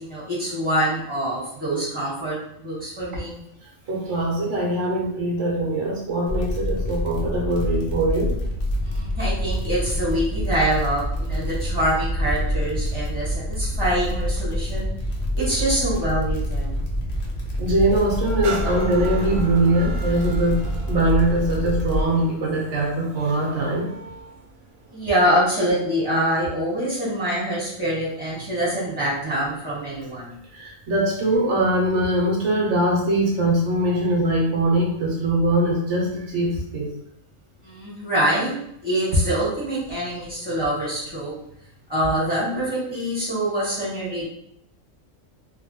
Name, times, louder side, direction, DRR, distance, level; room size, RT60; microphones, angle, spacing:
voice 1, 0.0-3.4 8.8-14.9 15.3-16.8 24.9-30.3 37.6-38.5 38.8-41.3 41.9-44.3, right 1 dB, 5° right, -10 dB, 1.3 m, -25 dB
voice 2, 3.9-8.3 17.6-23.9 30.5-36.9, right 1 dB, 65° right, -2 dB, 1.1 m, -22 dB
sound 1, 6.3-22.1, equal, 60° left, 0.8 m, -26 dB
sound 2, 18.4-26.0 26.6-26.7, right 4 dB, 85° right, 1.0 m, -38 dB
3.0 x 2.3 x 2.7 m, 0.75 s
omnidirectional pair, 1.4 m